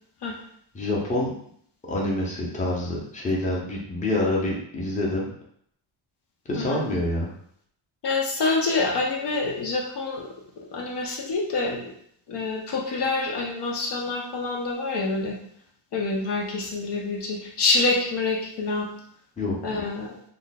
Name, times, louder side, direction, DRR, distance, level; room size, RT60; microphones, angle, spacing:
voice 1, 0.7-1.3 1.9-5.3 6.5-7.3 19.4-19.6, left 1 dB, 15° left, -3 dB, 0.7 m, -26 dB
voice 2, 8.0-10.3 10.7-11.9 12.3-15.4 15.9-18.9 19.6-20.1, left 3 dB, 55° left, -1 dB, 0.6 m, -26 dB
2.5 x 2.2 x 3.9 m, 0.67 s
cardioid pair, 130°, 48 cm